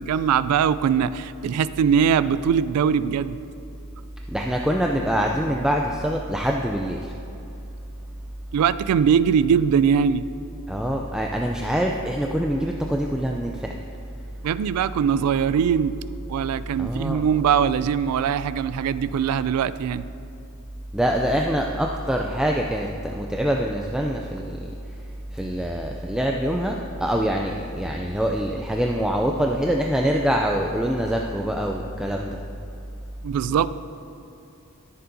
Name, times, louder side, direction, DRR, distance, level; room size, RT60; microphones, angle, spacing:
voice 1, 0.0-3.4 8.5-10.3 14.4-16.0 16.3-20.1 33.2-33.7, right 7 dB, 80° right, 17 dB, 0.3 m, -21 dB
voice 2, 4.3-7.1 10.7-13.7 16.8-17.2 20.9-24.7 25.3-32.4, equal, 5° right, 0 dB, 0.3 m, -24 dB
13.5 x 6.9 x 2.7 m, 2.9 s
head